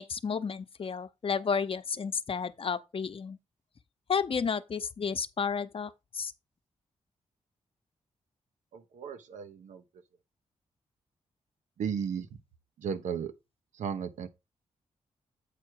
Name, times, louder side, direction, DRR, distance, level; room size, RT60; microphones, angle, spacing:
voice 1, 0.0-3.4 4.1-6.3, left 6 dB, 50° left, 0.8 m, -32 dB
voice 2, 8.7-9.8 11.8-12.3 12.8-13.3 13.7-14.3, right 7 dB, 85° right, 1.0 m, -35 dB
8.3 x 4.7 x 4.6 m
cardioid pair, 60°, 12 cm